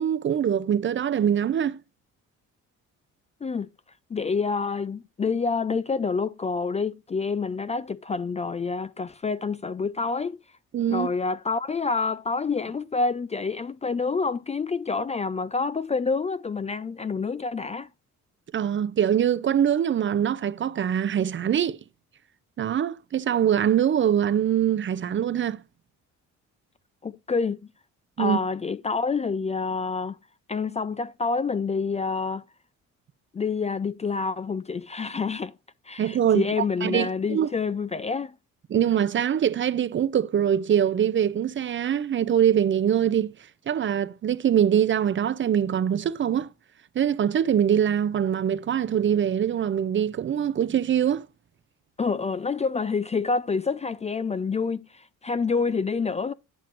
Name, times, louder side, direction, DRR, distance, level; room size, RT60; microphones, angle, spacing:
voice 1, 0.0-1.8 10.7-11.1 18.5-21.8 22.6-25.6 28.2-28.4 36.0-37.5 38.7-43.4 43.7-46.5 46.9-51.3, right 9 dB, 40° right, 0.5 m, -23 dB
voice 2, 4.1-10.4 10.9-17.9 27.0-27.7 28.2-30.2 30.5-32.4 33.3-35.5 35.9-38.3 52.0-56.3, left 4 dB, 20° left, 0.4 m, -27 dB
9.1 x 7.6 x 2.5 m
cardioid pair, 90°, 30 cm